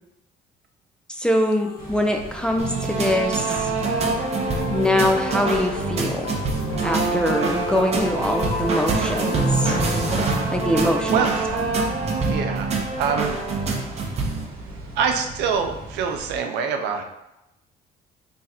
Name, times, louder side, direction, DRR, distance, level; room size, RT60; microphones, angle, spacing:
voice 1, 1.1-3.7 4.7-6.4 6.8-9.8 10.5-11.3, left 1 dB, 5° left, 3 dB, 0.4 m, -23 dB
sound 1, 1.4-12.4, left 6 dB, 65° left, 0.4 m, -36 dB
sound 2, 1.8-16.4, right 2 dB, 60° right, 1.0 m, -37 dB
sound 3, 2.6-14.5, right 3 dB, 40° right, 0.7 m, -25 dB
voice 2, 11.1-11.6 12.2-13.4 15.0-17.0, right 6 dB, 85° right, 5 dB, 0.5 m, -25 dB
3.3 x 2.4 x 4.1 m, 0.90 s
cardioid pair, 110°, 17 cm